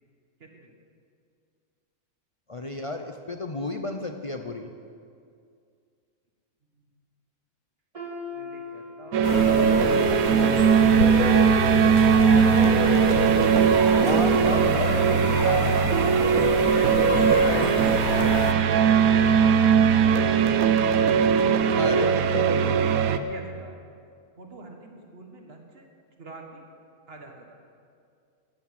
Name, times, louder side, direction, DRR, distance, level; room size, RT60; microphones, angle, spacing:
voice 1, 0.4-0.7 8.3-9.6 12.7-13.9 22.9-23.7 24.4-25.9 26.2-26.6 27.1-27.6, right 2 dB, 45° right, 2 dB, 1.7 m, -46 dB
voice 2, 2.5-4.7 14.0-15.0 21.8-22.8, left 2 dB, 45° left, 5 dB, 0.4 m, -32 dB
sound 1, 7.9-13.9 14.3-14.5 15.3-15.4, left 3 dB, 25° right, 1.6 m, -44 dB
sound 2, 9.1-23.2, right 7 dB, 80° right, 1.1 m, -20 dB
sound 3, 9.2-18.5, left 7 dB, 80° left, 1.2 m, -29 dB
14.5 x 8.6 x 7.4 m, 2.3 s
omnidirectional pair, 1.5 m